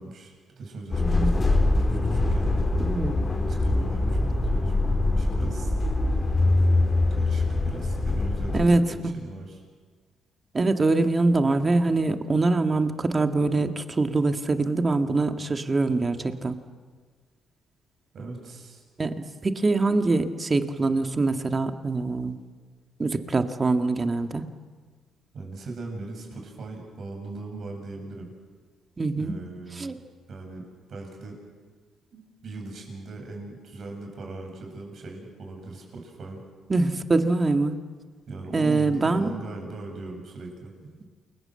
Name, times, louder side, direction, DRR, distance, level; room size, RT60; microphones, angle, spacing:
voice 1, 0.0-2.5 3.5-5.7 6.6-9.6 18.1-18.8 25.3-28.3 29.2-30.0 30.3-30.6 30.9-31.4 32.1-36.4 38.3-40.7, right 3 dB, 60° right, 2 dB, 7.4 m, -39 dB
sound 1, 0.9-8.7, left 2 dB, 30° left, 4.4 m, -23 dB
voice 2, 1.0-1.4 2.8-3.1 8.5-8.9 10.5-16.5 19.0-19.1 19.4-22.4 23.0-24.4 29.0-29.3 29.8-29.9 36.7-37.7 38.5-39.3, right 3 dB, 30° right, 7 dB, 1.9 m, -23 dB
28.5 x 21.5 x 7.8 m, 1.5 s
cardioid pair, 90°, 0 cm